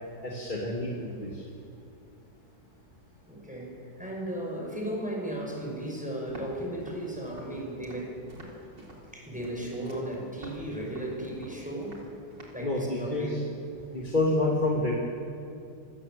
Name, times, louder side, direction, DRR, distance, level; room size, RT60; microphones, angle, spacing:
voice 1, 0.2-1.3 12.6-13.4 13.9-14.9, left 2 dB, 30° left, -3 dB, 2.5 m, -28 dB
voice 2, 3.3-8.2 9.1-12.0 12.5-13.3, right 1 dB, 5° right, -1 dB, 5.4 m, -35 dB
Walk footsteps, 6.3-12.7, right 1 dB, 85° right, 4.4 m, -48 dB
27.0 x 17.5 x 7.6 m, 2.6 s
omnidirectional pair, 1.9 m